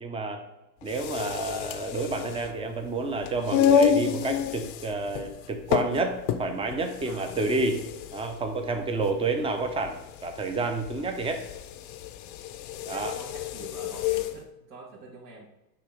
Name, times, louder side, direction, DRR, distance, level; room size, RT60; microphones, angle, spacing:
voice 1, 0.0-0.4 0.8-7.8 8.1-11.4 12.9-13.1, right 3 dB, 10° right, 6 dB, 0.6 m, -29 dB
sound 1, 0.8-14.4, left 8 dB, 45° left, 0.6 m, -29 dB
voice 2, 7.0-7.3 12.9-15.5, right 3 dB, 65° right, -5 dB, 2.1 m, -46 dB
8.7 x 3.1 x 5.0 m, 0.98 s
hypercardioid pair, 115°, 50 cm